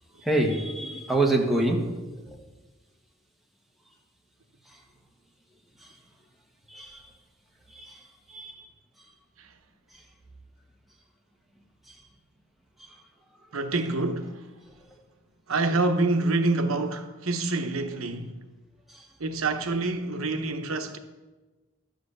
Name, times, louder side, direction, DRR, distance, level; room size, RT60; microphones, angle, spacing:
voice 1, 0.2-2.4 4.7-4.8 5.8-6.0 6.7-7.1 7.7-8.7 9.9-10.0 11.9-12.0 12.8-13.0 18.9-19.1, right 2 dB, ahead, 1.5 m, -28 dB
voice 2, 13.5-14.5 15.5-18.4 19.2-21.0, right 2 dB, 80° right, 1.0 m, -27 dB
12.0 x 7.9 x 6.6 m
head